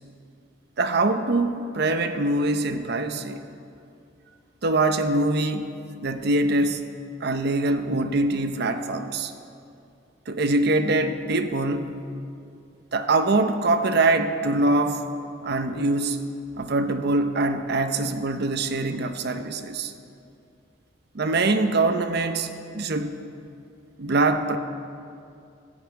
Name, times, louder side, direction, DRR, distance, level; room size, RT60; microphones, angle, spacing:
voice 1, 0.8-3.4 4.6-5.7 6.0-6.9 7.2-9.3 10.3-12.1 12.9-15.1 15.4-16.2 16.6-19.9 21.1-23.1 24.0-24.6, right 2 dB, 55° right, 8 dB, 0.7 m, -23 dB
14.5 x 5.5 x 9.3 m, 2.5 s
head